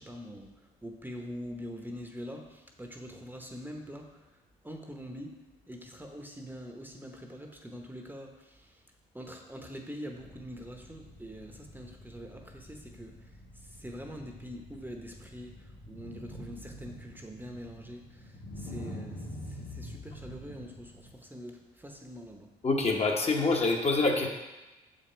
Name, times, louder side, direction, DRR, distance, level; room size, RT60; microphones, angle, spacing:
voice 1, 0.0-5.4 5.7-8.8 9.1-22.5, equal, 10° right, 3 dB, 0.9 m, -44 dB
sound 1, 10.2-21.1, left 1 dB, 70° left, 1.8 m, -46 dB
voice 2, 22.6-24.3, left 3 dB, 35° left, 1 dB, 1.2 m, -26 dB
6.7 x 5.2 x 4.4 m, 1.1 s
supercardioid pair, 65°, 18 cm